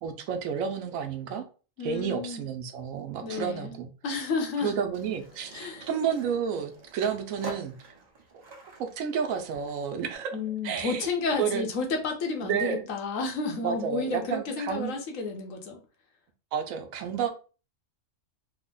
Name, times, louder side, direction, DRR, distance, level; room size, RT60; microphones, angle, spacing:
voice 1, 0.0-1.4 1.8-3.9 4.6-7.9 8.8-10.4 10.6-11.1 11.4-11.6 12.4-12.8 13.6-14.9 16.5-17.3, right 7 dB, 80° right, 6 dB, 1.0 m, -31 dB
voice 2, 1.8-2.4 3.2-3.7 4.0-4.7 5.5-5.9 10.3-15.8, left 3 dB, 70° left, 3 dB, 1.2 m, -31 dB
Skateboard, 4.9-10.1, right 2 dB, 40° right, 0.6 m, -46 dB
3.3 x 2.1 x 3.7 m, 0.36 s
omnidirectional pair, 1.4 m